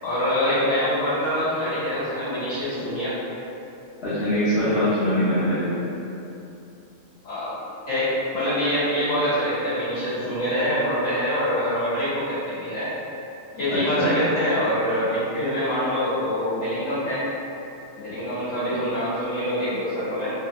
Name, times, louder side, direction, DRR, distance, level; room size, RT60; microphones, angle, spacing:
voice 1, 0.0-3.1 7.2-7.5 7.9-12.9 13.5-17.2 17.9-20.3, equal, 90° left, -14 dB, 2.0 m, -25 dB
voice 2, 4.0-5.7 13.7-14.1, equal, 60° left, -14 dB, 1.0 m, -23 dB
3.8 x 2.1 x 2.8 m, 2.9 s
omnidirectional pair, 1.3 m